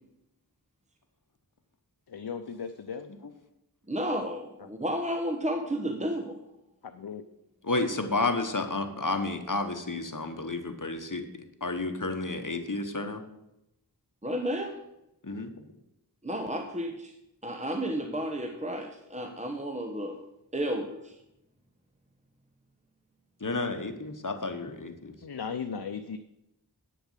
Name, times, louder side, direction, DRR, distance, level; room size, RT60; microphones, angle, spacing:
voice 1, 2.1-3.1 4.6-4.7 6.8-7.2 25.2-26.2, left 6 dB, 85° left, 8 dB, 0.6 m, -37 dB
voice 2, 3.9-6.4 14.2-14.8 16.2-17.1 17.4-20.2 20.5-21.2, equal, 20° right, 5 dB, 1.0 m, -32 dB
voice 3, 7.6-13.2 15.2-15.6 23.4-25.1, left 3 dB, 55° left, 7 dB, 1.2 m, -31 dB
9.2 x 6.9 x 7.4 m, 0.87 s
wide cardioid pair, 40°, 38 cm